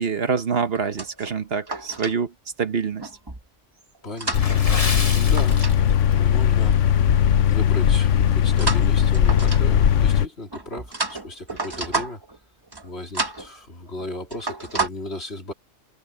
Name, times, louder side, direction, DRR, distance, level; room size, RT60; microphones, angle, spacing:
voice 1, 0.0-2.3 2.6-3.1, right 6 dB, 55° right, 1.2 m, -25 dB
sound 1, 0.8-2.2 3.0-3.4 4.0-5.8 6.0-6.3 8.6-9.9 10.5-12.4 12.7-12.9 13.1-13.5 13.9-14.1 14.3-14.9, right 3 dB, 20° right, 1.1 m, -30 dB
voice 2, 4.0-5.6 6.2-6.8 7.5-12.2 12.8-15.5, left 2 dB, 60° left, 3.8 m, -36 dB
sound 2, 4.3-10.3, left 9 dB, 90° left, 1.2 m, -19 dB
Water / Splash splatter, 4.3-6.2 6.5-6.7 7.3-7.5 8.0-8.1, left 3 dB, 30° left, 1.2 m, -31 dB
omnidirectional pair, 1.2 m